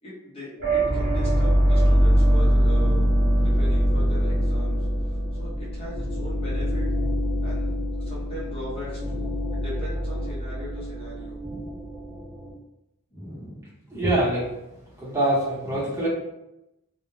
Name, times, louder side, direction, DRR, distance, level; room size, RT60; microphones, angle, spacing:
voice 1, 0.0-4.9 5.3-6.9 7.4-11.8 13.1-14.1 15.6-16.1, equal, 25° left, -8 dB, 0.7 m, -40 dB
sound 1, 0.6-12.5, equal, 40° right, 1.0 m, -23 dB
voice 2, 13.9-14.5 15.0-16.1, right 1 dB, 15° right, -8 dB, 0.8 m, -24 dB
2.2 x 2.1 x 3.1 m, 0.91 s
head